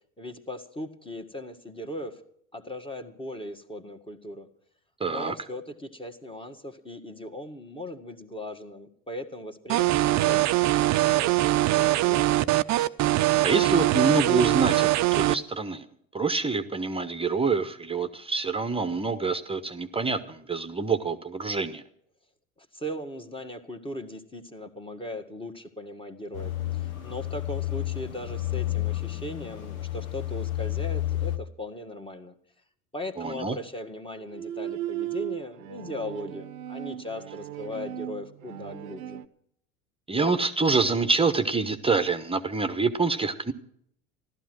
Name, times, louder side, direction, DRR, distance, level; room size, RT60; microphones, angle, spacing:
voice 1, 0.2-2.2 2.5-4.5 5.0-12.5 22.6-32.3 32.9-39.2, left 1 dB, 10° left, 6 dB, 1.8 m, -38 dB
voice 2, 5.0-5.3 13.4-15.9 16.1-21.8 33.2-33.6 40.1-43.5, right 4 dB, 15° right, 9 dB, 1.1 m, -26 dB
sound 1, 9.7-15.3, right 16 dB, 40° right, 0.6 m, -22 dB
sound 2, 26.3-31.4, left 15 dB, 85° left, 1.5 m, -31 dB
Bowed string instrument, 34.2-39.3, right 13 dB, 80° right, 0.8 m, -37 dB
14.5 x 12.5 x 6.2 m, 0.68 s
hypercardioid pair, 80°, 41 cm